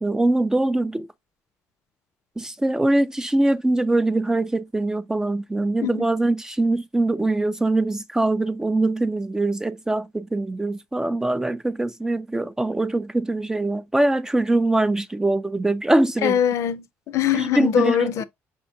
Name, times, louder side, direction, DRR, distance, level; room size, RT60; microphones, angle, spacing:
voice 1, 0.0-1.1 2.4-16.4 17.3-18.1, right 2 dB, 10° right, 0.3 m, -22 dB
voice 2, 16.2-18.2, left 9 dB, 65° left, 0.5 m, -22 dB
5.0 x 3.6 x 2.6 m
cardioid pair, 100°, 6 cm